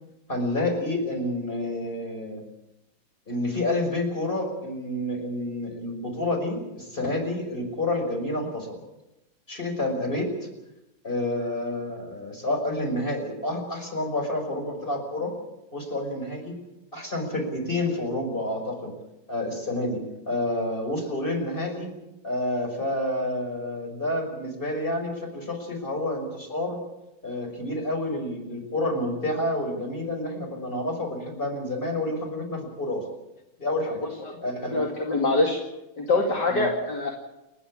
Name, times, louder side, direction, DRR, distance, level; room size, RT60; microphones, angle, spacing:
voice 1, 0.3-2.4 3.3-8.8 9.5-10.3 11.0-15.3 15.7-16.5 16.9-18.9 19.3-20.0 20.3-21.9 22.2-26.8 27.2-33.0 33.6-34.0 34.4-34.8 36.5-36.7, left 1 dB, 25° left, 2 dB, 6.0 m, -29 dB
voice 2, 34.7-35.6 36.0-37.1, left 2 dB, 50° left, 0 dB, 2.9 m, -24 dB
30.0 x 10.0 x 9.9 m, 0.95 s
omnidirectional pair, 2.3 m